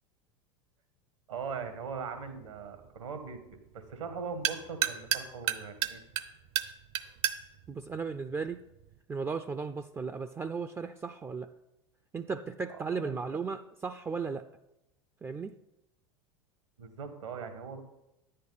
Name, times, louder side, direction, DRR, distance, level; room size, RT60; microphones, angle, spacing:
voice 1, 1.3-6.0 12.7-13.2 16.8-17.8, right 5 dB, 75° right, 8 dB, 1.5 m, -40 dB
sound 1, 1.4-9.0, right 12 dB, 60° right, 0.8 m, -36 dB
voice 2, 7.7-8.6 9.1-11.5 12.1-14.5 15.2-15.5, right 5 dB, 15° right, 9 dB, 0.4 m, -35 dB
10.5 x 8.6 x 4.1 m, 0.91 s
figure-of-eight pair, 85°, 16 cm